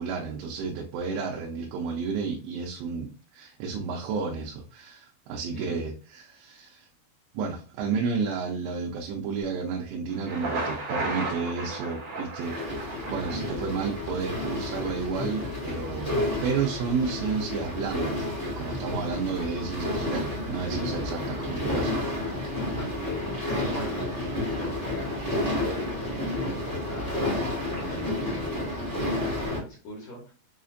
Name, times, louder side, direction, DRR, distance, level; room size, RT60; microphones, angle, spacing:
voice 1, 0.0-6.9 7.3-12.6 13.1-21.9, right 5 dB, 90° right, 0 dB, 2.9 m, -31 dB
Thunder, 10.1-14.1, right 2 dB, 55° right, 2.1 m, -34 dB
sound 1, 12.4-29.6, left 1 dB, 35° right, 0.5 m, -31 dB
voice 2, 20.0-20.6 22.7-30.3, left 1 dB, 75° left, -4 dB, 1.6 m, -42 dB
6.6 x 2.5 x 2.5 m, 0.37 s
omnidirectional pair, 4.9 m